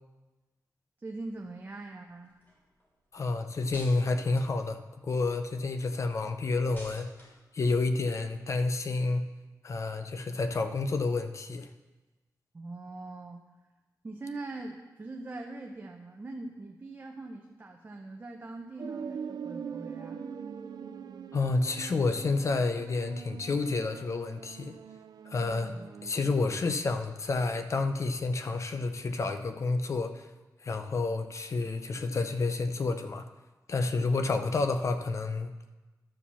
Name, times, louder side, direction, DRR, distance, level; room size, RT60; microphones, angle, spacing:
voice 1, 1.0-2.3 12.5-13.4 14.0-20.2 25.7-25.9, right 2 dB, 30° right, 1 dB, 0.7 m, -42 dB
sound 1, 1.2-5.4 5.8-9.2, equal, 30° left, 3.2 m, -55 dB
voice 2, 3.1-4.8 5.1-7.1 7.5-9.2 9.6-11.7 21.3-24.8 25.3-25.7 26.0-30.3 30.6-33.3 33.7-35.5, left 3 dB, 45° left, 8 dB, 0.6 m, -29 dB
sound 2, 18.8-26.1, right 7 dB, 75° right, 0.4 m, -42 dB
12.0 x 5.0 x 6.9 m, 1.2 s
wide cardioid pair, 150°, 7 cm